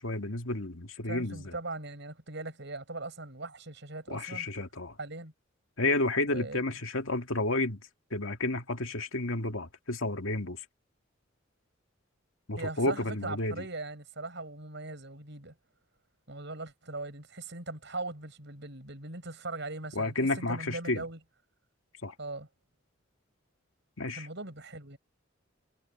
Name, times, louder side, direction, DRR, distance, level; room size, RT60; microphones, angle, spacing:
voice 1, 0.0-1.5 4.1-5.0 5.8-7.8 8.1-10.6 12.5-13.7 20.0-21.0 22.0-22.1 24.0-24.3, left 2 dB, 85° left, 2.2 m, -31 dB
voice 2, 1.1-4.5 5.0-5.3 6.3-6.8 12.6-15.5 16.3-21.2 22.2-22.5 24.1-25.0, right 2 dB, 60° right, 7.8 m, -40 dB
head